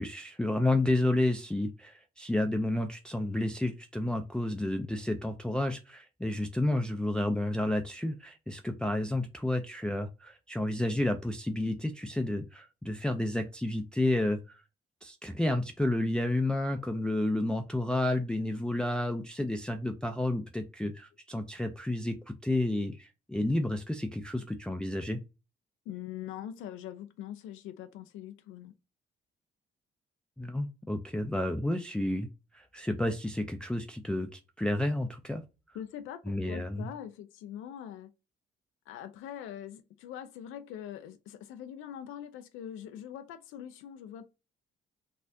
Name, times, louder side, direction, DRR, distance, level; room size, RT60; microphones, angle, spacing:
voice 1, 0.0-14.6 15.0-22.2 22.4-25.2 30.4-32.3 32.5-35.4 36.3-36.9, left 1 dB, 5° left, 0.4 m, -31 dB
voice 2, 25.9-28.7 35.7-38.1 38.9-44.2, left 10 dB, 90° left, 0.4 m, -43 dB
4.2 x 2.4 x 2.6 m
cardioid pair, 90°, 20 cm